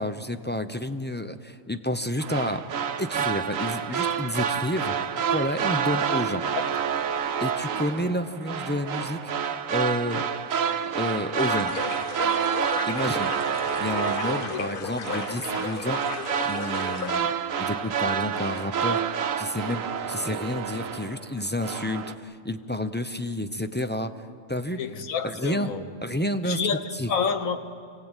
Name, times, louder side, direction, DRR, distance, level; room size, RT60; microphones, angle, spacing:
voice 1, 0.0-2.6 3.0-4.9 5.3-6.5 7.4-9.3 9.7-10.3 10.9-11.8 12.8-13.3 13.8-16.0 16.4-17.3 17.6-19.0 19.4-24.1 24.5-24.8 25.2-25.7 26.0-26.6 27.0-27.1, left 1 dB, 15° left, 0.5 m, -30 dB
sound 1, 2.2-21.3 21.6-22.1, right 7 dB, 80° right, 1.3 m, -28 dB
sound 2, 11.4-17.2, left 6 dB, 45° left, 0.9 m, -35 dB
voice 2, 14.3-14.6 24.8-25.8 26.4-27.6, left 6 dB, 90° left, 1.6 m, -29 dB
25.0 x 17.0 x 9.0 m
omnidirectional pair, 1.4 m